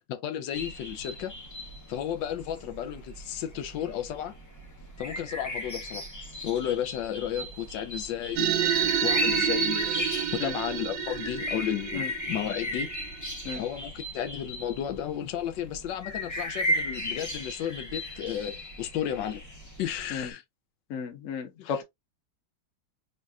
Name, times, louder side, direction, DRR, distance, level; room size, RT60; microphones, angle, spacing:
voice 1, 0.1-1.3 1.9-4.4 5.0-6.1 6.4-12.9 13.5-19.4 19.8-20.4 21.6-21.8, left 10 dB, 85° left, 1.3 m, -33 dB
sound 1, 0.5-20.3, left 1 dB, 30° left, 0.3 m, -36 dB
sound 2, 8.4-13.2, right 9 dB, 80° right, 1.2 m, -29 dB
voice 2, 20.9-21.8, left 6 dB, 55° left, 1.0 m, -33 dB
5.3 x 2.4 x 2.3 m
omnidirectional pair, 2.0 m